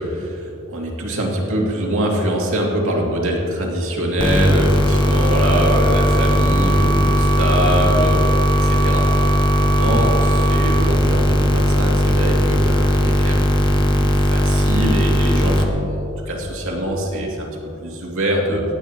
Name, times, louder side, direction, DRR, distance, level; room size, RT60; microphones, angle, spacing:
voice 1, 0.0-9.3 9.6-17.5 17.8-18.6, right 1 dB, 70° right, -2 dB, 2.5 m, -23 dB
sound 1, 4.2-15.6, equal, 20° left, 1.0 m, -17 dB
sound 2, 4.4-10.8, right 4 dB, 5° right, 1.4 m, -27 dB
26.0 x 9.1 x 3.0 m, 2.7 s
head